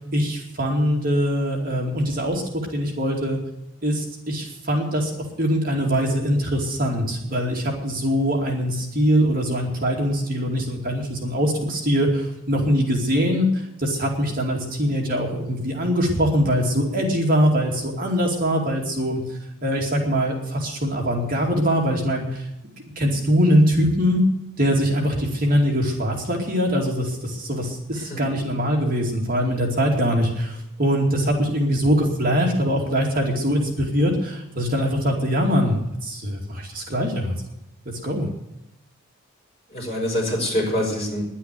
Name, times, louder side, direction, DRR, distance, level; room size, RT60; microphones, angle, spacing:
voice 1, 0.1-3.4 3.8-19.2 19.6-22.5 23.0-24.2 24.6-37.3 38.0-38.3, equal, 45° right, 0 dB, 2.6 m, -22 dB
voice 2, 39.7-41.2, left 1 dB, 30° left, -1 dB, 6.1 m, -25 dB
11.0 x 10.0 x 9.2 m, 0.84 s
head